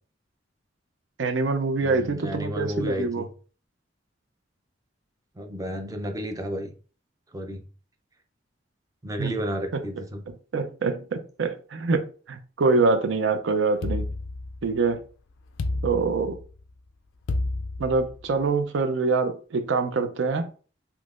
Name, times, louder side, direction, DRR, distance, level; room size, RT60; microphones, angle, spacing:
voice 1, 1.2-3.3 9.2-9.3 9.7-9.8 10.5-14.1 14.6-15.0 15.8-16.4 17.8-20.5, right 4 dB, 70° right, 0.5 m, -25 dB
voice 2, 1.8-3.3 5.4-6.7 7.3-7.6 9.0-10.2, equal, 20° right, 0.5 m, -32 dB
sound 1, 13.8-14.9 15.6-16.6 17.3-18.4, left 2 dB, 70° left, 0.4 m, -30 dB
3.7 x 2.9 x 2.4 m
head